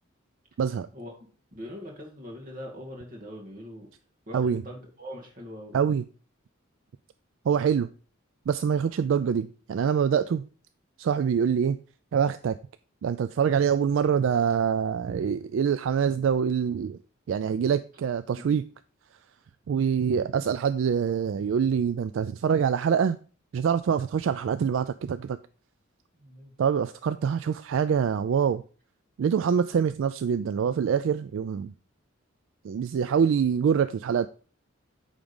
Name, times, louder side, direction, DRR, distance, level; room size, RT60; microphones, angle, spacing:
voice 1, 1.5-3.9 4.3-5.8 18.4-18.6 26.1-26.5, equal, 40° right, 2.1 m, -42 dB
voice 2, 5.7-6.0 7.5-7.9 8.5-10.4 11.0-11.8 12.1-12.6 13.0-17.0 17.3-18.6 19.7-23.2 23.5-25.4 26.6-28.6 29.2-31.7 32.6-34.3, right 7 dB, 70° right, 0.3 m, -25 dB
8.8 x 3.6 x 5.2 m
head